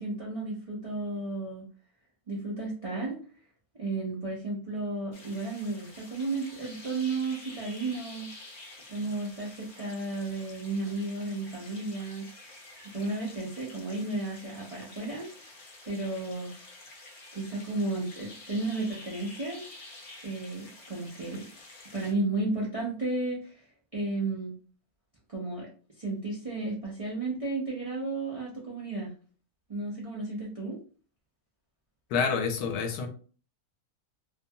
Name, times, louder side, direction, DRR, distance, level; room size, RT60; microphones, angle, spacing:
voice 1, 0.0-1.7 2.3-3.2 3.7-8.3 8.9-12.5 12.8-15.3 15.9-16.6 17.3-19.7 20.2-21.5 21.9-23.7 23.9-24.5 25.3-25.7 26.0-29.1 29.7-30.8, right 2 dB, 65° right, -4 dB, 0.3 m, -33 dB
sound 1, 5.1-22.1, left 2 dB, 55° left, 0.7 m, -49 dB
voice 2, 32.1-33.1, left 5 dB, 80° left, 5 dB, 1.1 m, -28 dB
2.7 x 2.2 x 2.7 m, 0.40 s
omnidirectional pair, 1.6 m